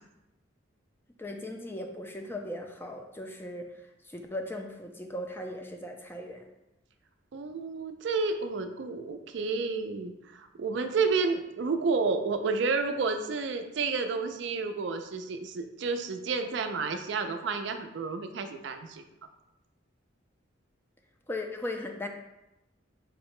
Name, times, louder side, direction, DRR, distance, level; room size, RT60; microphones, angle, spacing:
voice 1, 1.2-3.7 4.0-6.5 21.3-22.1, left 1 dB, 10° left, 3 dB, 0.3 m, -38 dB
voice 2, 7.3-19.0, right 4 dB, 65° right, 7 dB, 0.4 m, -30 dB
5.0 x 2.1 x 4.7 m, 0.94 s
head